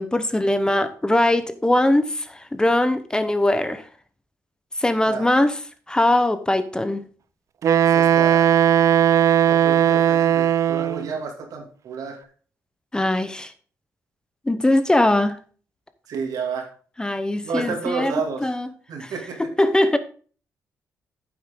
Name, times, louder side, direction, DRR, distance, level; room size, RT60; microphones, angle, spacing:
voice 1, 0.0-3.8 4.8-5.5 5.9-7.0 12.9-13.5 14.5-15.4 17.0-18.1 18.4-18.7 19.0-19.1 19.6-20.0, left 1 dB, 15° left, 11 dB, 0.9 m, -21 dB
Wind instrument woodwind instrument, 7.6-11.1, right 10 dB, 55° right, 0.5 m, -17 dB
voice 2, 7.9-8.6 9.5-12.3 16.1-16.7 17.4-18.5 18.9-19.4, right 5 dB, 75° right, 3 dB, 2.6 m, -30 dB
9.3 x 7.7 x 3.8 m, 0.42 s
cardioid pair, 85°, 6 cm